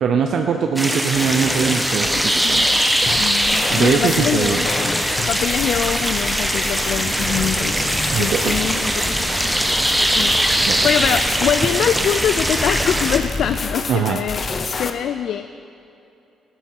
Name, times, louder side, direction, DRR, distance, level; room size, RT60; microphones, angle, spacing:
voice 1, 0.0-2.6 3.7-4.7 8.1-8.6 10.7-10.9 13.9-14.2, right 6 dB, 70° right, 4 dB, 0.7 m, -21 dB
sound 1, 0.8-13.2, right 1 dB, 5° right, 1.1 m, -21 dB
sound 2, 1.1-14.9, left 4 dB, 40° left, 0.8 m, -30 dB
voice 2, 3.2-4.6 5.3-9.8 10.2-15.5, left 9 dB, 70° left, 11 dB, 0.4 m, -24 dB
sound 3, 7.0-13.2, right 2 dB, 20° right, 0.6 m, -31 dB
14.0 x 12.5 x 4.5 m, 2.7 s
cardioid pair, 90°, 0 cm